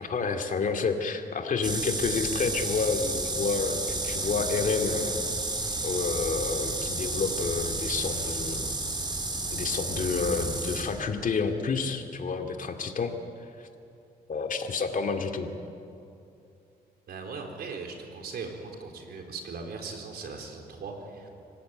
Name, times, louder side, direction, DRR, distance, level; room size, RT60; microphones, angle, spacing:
voice 1, 0.0-5.2 5.8-8.7 9.5-13.1 13.6-13.7 14.3-15.5, left 5 dB, 55° left, 5 dB, 2.4 m, -29 dB
sound 1, 1.6-11.1, right 2 dB, 25° right, 3.6 m, -31 dB
voice 2, 17.1-21.3, right 4 dB, 75° right, 2 dB, 4.2 m, -39 dB
25.5 x 18.5 x 9.1 m, 2.6 s
cardioid pair, 80°, 17 cm